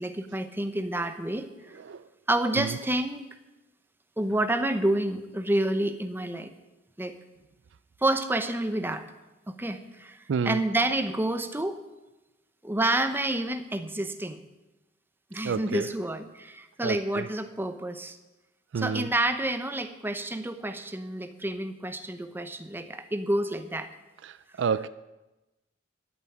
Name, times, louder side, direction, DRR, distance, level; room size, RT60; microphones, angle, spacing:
voice 1, 0.0-1.5 2.3-3.3 4.2-6.5 7.0-7.1 8.0-9.0 9.5-10.2 10.4-11.8 12.6-14.4 15.3-18.2 18.8-23.9, right 1 dB, 10° right, 8 dB, 0.8 m, -29 dB
voice 2, 10.3-10.6 15.4-15.9 16.8-17.3 18.7-19.1 24.2-24.9, right 6 dB, 60° right, 16 dB, 0.4 m, -29 dB
13.0 x 6.9 x 10.0 m, 1.0 s
head